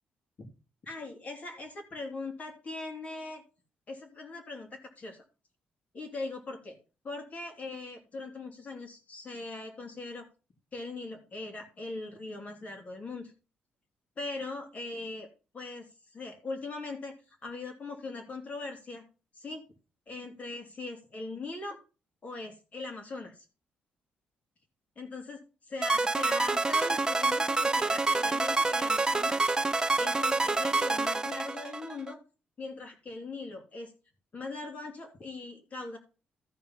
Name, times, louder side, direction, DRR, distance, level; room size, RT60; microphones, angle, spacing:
voice 1, 0.8-3.4 3.9-5.2 5.9-6.7 7.0-10.3 10.7-13.3 14.2-15.3 15.5-15.9 16.1-17.1 17.4-19.0 19.3-19.6 20.1-21.8 22.2-23.4 24.9-25.4 25.7-29.4 30.0-32.2 32.6-33.9 34.3-36.0, left 3 dB, 45° left, 3 dB, 3.3 m, -40 dB
sound 1, 25.8-32.1, right 3 dB, 20° right, 0.7 m, -27 dB
14.0 x 4.7 x 5.6 m, 0.33 s
cardioid pair, 90°, 4 cm